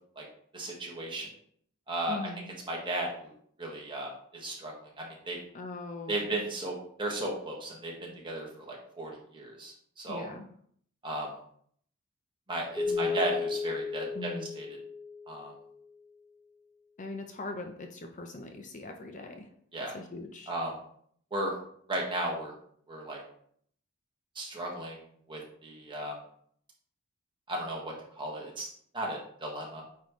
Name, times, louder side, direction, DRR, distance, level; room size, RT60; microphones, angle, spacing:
voice 1, 0.5-1.3 1.9-2.2 2.7-3.3 3.6-5.4 6.1-10.3 11.0-11.3 12.5-14.6 15.3-15.5 19.7-19.9 20.5-20.7 21.3-21.5 21.9-22.5 22.9-23.2 24.3-25.0 25.3-26.2 27.5-28.7 28.9-29.8, right 1 dB, 25° right, -2 dB, 1.6 m, -35 dB
voice 2, 2.1-2.5 5.5-6.3 10.1-10.5 12.9-13.2 14.1-14.5 17.0-19.5 19.9-20.5, left 2 dB, 35° left, 4 dB, 0.6 m, -41 dB
Keyboard (musical), 12.8-15.7, left 5 dB, 10° left, 0.8 m, -34 dB
8.8 x 3.7 x 3.1 m, 0.62 s
head